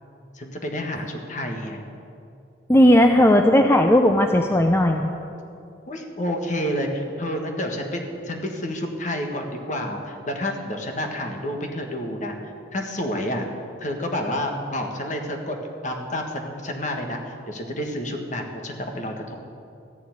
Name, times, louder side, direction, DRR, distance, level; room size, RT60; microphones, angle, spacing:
voice 1, 0.3-1.8 5.9-13.5 13.8-15.6 15.8-19.3, left 1 dB, 45° left, 3 dB, 1.6 m, -29 dB
voice 2, 2.7-5.1, left 1 dB, 15° left, 4 dB, 0.5 m, -16 dB
14.0 x 6.8 x 9.6 m, 2.5 s
head